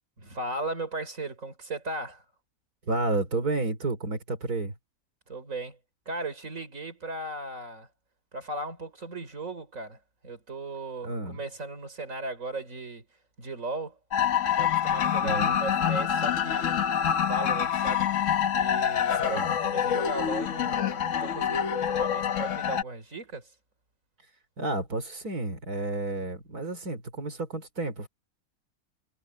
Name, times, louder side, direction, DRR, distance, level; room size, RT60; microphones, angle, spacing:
voice 1, 0.2-2.2 5.3-5.8 6.1-7.9 8.3-13.1 13.4-14.0 14.6-16.8 17.2-18.1 18.5-23.5, right 2 dB, 60° right, 4.8 m, -37 dB
voice 2, 2.9-4.7 11.0-11.4 15.2-15.6 19.2-19.5 24.6-28.1, right 2 dB, 80° right, 4.0 m, -31 dB
sound 1, 14.1-22.8, left 8 dB, 60° left, 1.3 m, -26 dB
omnidirectional pair, 1.6 m